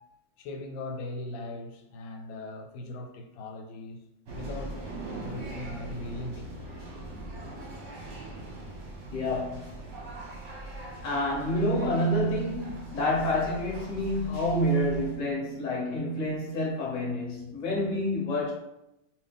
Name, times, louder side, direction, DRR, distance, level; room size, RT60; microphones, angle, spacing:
voice 1, 0.0-4.8 5.2-6.5 8.5-8.7, left 2 dB, 90° left, 3 dB, 1.3 m, -40 dB
sound 1, 4.3-15.1, right 2 dB, 50° right, 1.0 m, -41 dB
voice 2, 9.1-9.8 11.0-18.5, left 1 dB, 40° left, -3 dB, 0.6 m, -28 dB
3.0 x 2.7 x 3.3 m, 0.88 s
omnidirectional pair, 2.1 m